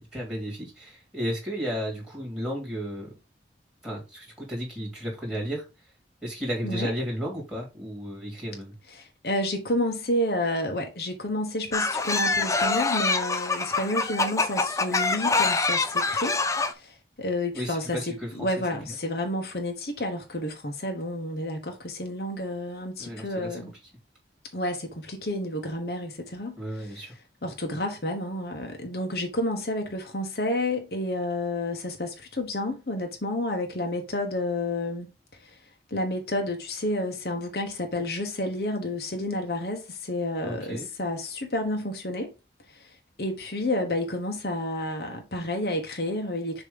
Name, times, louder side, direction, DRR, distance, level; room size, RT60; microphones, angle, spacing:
voice 1, 0.1-3.1 3.8-5.6 6.2-8.7 17.5-18.3 18.9-19.0 23.0-23.6 26.6-27.1 40.4-40.9, equal, 5° right, 2.9 m, -33 dB
voice 2, 8.9-16.4 16.7-23.7 24.5-27.1 27.4-35.1 35.4-35.5 35.9-42.3 42.7-42.9 43.2-46.6, left 1 dB, 60° left, 1.1 m, -30 dB
sound 1, 11.7-16.7, left 3 dB, 15° left, 0.5 m, -25 dB
6.8 x 3.0 x 5.1 m
head